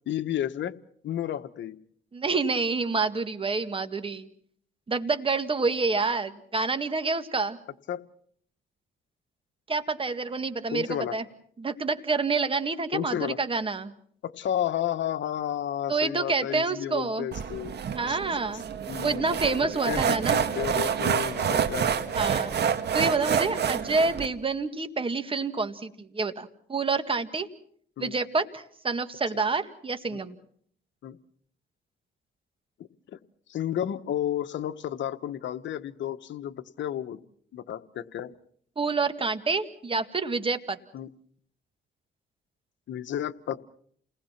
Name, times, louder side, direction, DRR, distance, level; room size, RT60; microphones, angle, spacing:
voice 1, 0.1-0.7 1.0-1.8 7.9-8.0 10.7-11.2 12.9-13.4 14.2-17.8 18.1-18.2 18.9-19.3 19.6-21.9 28.0-28.1 30.1-30.2 31.0-31.2 33.1-33.2 33.5-37.2 37.5-38.3 40.9-41.1 42.9-43.6, left 11 dB, 70° left, 9 dB, 1.3 m, -32 dB
voice 2, 2.1-4.3 4.9-7.6 9.7-11.2 11.6-13.9 15.9-17.3 18.0-18.6 19.0-20.4 22.1-22.5 22.9-27.5 28.0-30.4 38.8-40.8, right 4 dB, 25° right, 9 dB, 2.0 m, -28 dB
sound 1, 17.3-24.3, right 7 dB, 55° right, 2.1 m, -28 dB
29.5 x 19.5 x 6.0 m, 0.62 s
cardioid pair, 90°, 20 cm